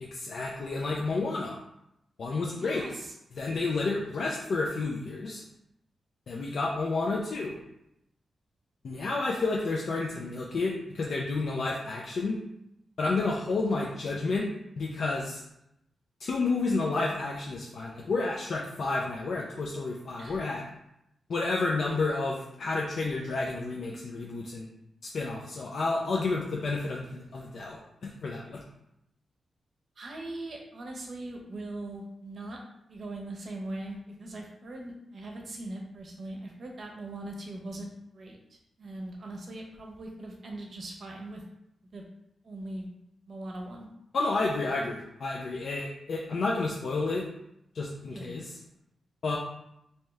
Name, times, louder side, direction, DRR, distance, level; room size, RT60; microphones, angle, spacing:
voice 1, 0.0-1.6 2.2-2.9 3.3-5.4 6.3-7.6 8.8-12.4 13.0-14.5 14.8-15.4 16.2-20.6 21.3-24.7 25.0-28.6 44.1-47.3 47.7-48.6 49.2-49.4, left 3 dB, 60° left, -2 dB, 0.4 m, -30 dB
voice 2, 2.6-3.1 20.2-20.4 30.0-32.6 32.9-37.9 38.1-41.4 41.9-42.0 42.4-42.9 43.3-43.9 48.1-48.3, right 2 dB, 50° right, 0 dB, 0.7 m, -40 dB
3.4 x 2.8 x 3.2 m, 0.82 s
wide cardioid pair, 115°, 0 cm